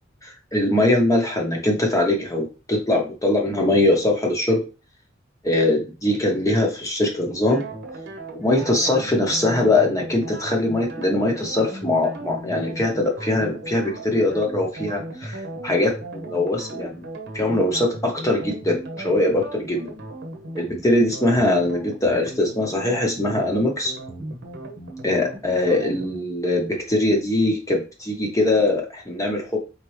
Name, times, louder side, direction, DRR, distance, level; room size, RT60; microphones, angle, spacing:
voice 1, 0.2-4.6 5.4-7.6 8.3-17.1 17.3-19.9 20.5-23.9 25.0-29.6, left 2 dB, 15° left, 0 dB, 0.8 m, -22 dB
sound 1, 7.4-26.2, right 1 dB, 60° right, 1.0 m, -36 dB
4.2 x 3.6 x 3.2 m, 0.32 s
head